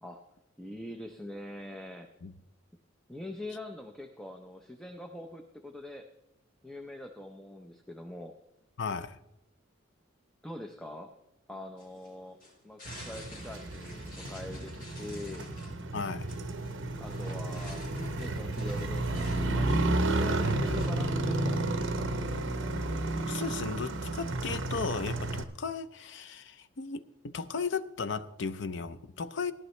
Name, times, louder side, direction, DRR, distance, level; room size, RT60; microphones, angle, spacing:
voice 1, 0.6-2.1 3.1-6.1 6.6-8.3 10.4-11.2 11.5-15.5 17.0-17.9 18.2-22.4, left 1 dB, 5° left, 0.6 m, -43 dB
voice 2, 8.8-9.2 15.9-16.3 23.3-29.5, left 5 dB, 60° left, 0.6 m, -35 dB
sound 1, 11.8-21.6, left 1 dB, 45° left, 4.7 m, -52 dB
Motorcycle, 12.9-25.4, right 2 dB, 65° right, 0.9 m, -32 dB
17.5 x 11.0 x 3.2 m
head